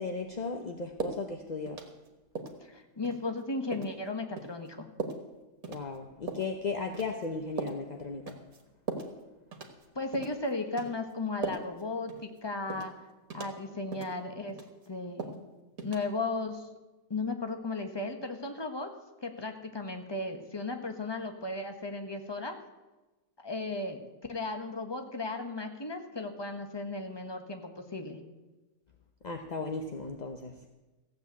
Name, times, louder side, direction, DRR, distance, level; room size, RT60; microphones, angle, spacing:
voice 1, 0.0-1.8 5.7-8.4 29.2-30.6, left 4 dB, 35° left, 4 dB, 0.7 m, -36 dB
sound 1, 1.0-1.2 1.7-2.1 2.3-2.6 3.0-3.2 3.7-3.9 4.4-4.5 5.0-5.2 5.6-5.8 6.3-6.5 6.9-7.3 7.6-7.8 8.3-8.6 8.9-9.1 9.5-9.8 10.1-10.4 10.8-10.9 11.4-11.8 12.1-12.2 12.7-12.9 13.3-13.6 13.9-14.1 14.5-14.9 15.2-15.4 15.8-16.0, right 4 dB, 55° right, 2.0 m, -38 dB
voice 2, 2.6-4.9 9.9-12.9 13.3-14.6 14.9-15.5 15.8-16.7 17.1-18.9 19.2-22.6 23.4-24.0 24.3-28.2, left 2 dB, 15° left, 5 dB, 1.2 m, -35 dB
15.5 x 8.1 x 8.2 m, 1.1 s
omnidirectional pair, 1.8 m